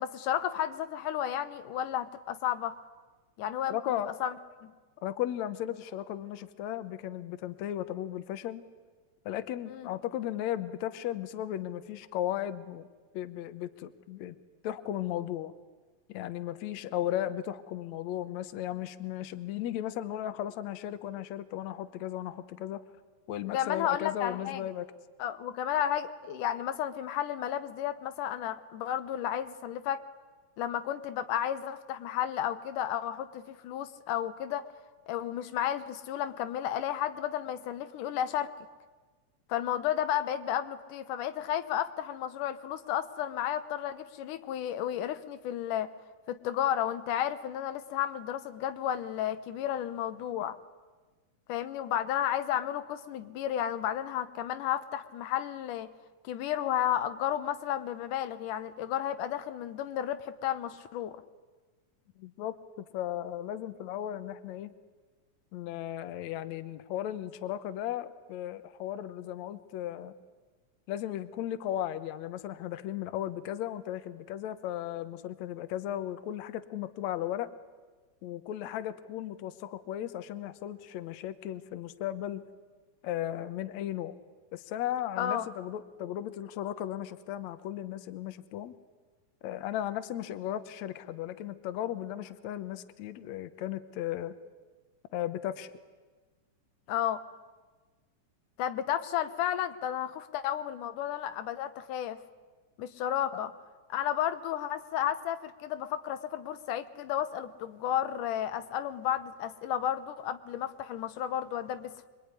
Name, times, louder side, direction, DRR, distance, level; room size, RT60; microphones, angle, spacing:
voice 1, 0.0-2.7 3.4-4.3 4.6-4.7 9.7-9.9 23.5-24.6 25.2-30.0 30.6-34.6 35.1-38.5 39.5-45.9 46.3-50.6 51.5-55.9 56.2-61.2 85.2-85.5 96.9-97.2 98.6-102.2 102.8-103.5 103.9-112.1, left 10 dB, 90° left, 11 dB, 2.6 m, -32 dB
voice 2, 3.7-4.1 5.0-8.6 9.3-12.9 13.1-14.4 14.6-15.5 16.1-22.8 23.3-24.9 62.2-64.7 65.5-70.1 70.9-77.5 78.2-82.4 83.0-84.2 84.5-88.7 89.4-94.4 95.1-95.7, left 12 dB, 70° left, 11 dB, 2.2 m, -36 dB
26.0 x 23.0 x 9.7 m, 1.3 s
omnidirectional pair, 3.6 m